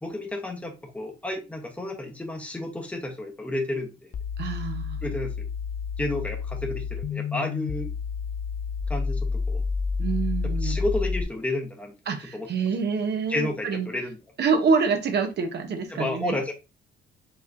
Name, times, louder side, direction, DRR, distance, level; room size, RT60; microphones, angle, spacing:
voice 1, 0.0-4.1 5.0-5.3 6.0-7.9 8.9-9.6 10.4-11.9 12.3-12.5 13.3-14.2 15.9-16.5, left 1 dB, 5° left, 2 dB, 1.0 m, -31 dB
sound 1, 4.1-11.2, left 5 dB, 40° left, 0.4 m, -29 dB
voice 2, 4.4-5.0 10.0-10.8 12.1-13.9 14.4-16.4, right 5 dB, 60° right, 6 dB, 0.9 m, -26 dB
4.8 x 3.1 x 2.6 m, 0.27 s
cardioid pair, 90°, 20 cm